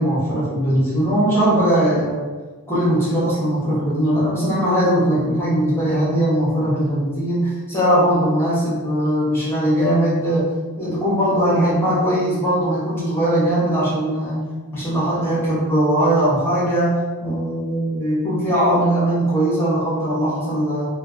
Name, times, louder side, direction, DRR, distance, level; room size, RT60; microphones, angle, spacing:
voice 1, 0.0-2.3 2.7-10.5 10.8-14.4 14.7-20.9, right 1 dB, 10° left, -9 dB, 0.9 m, -20 dB
2.9 x 2.2 x 2.4 m, 1.3 s
head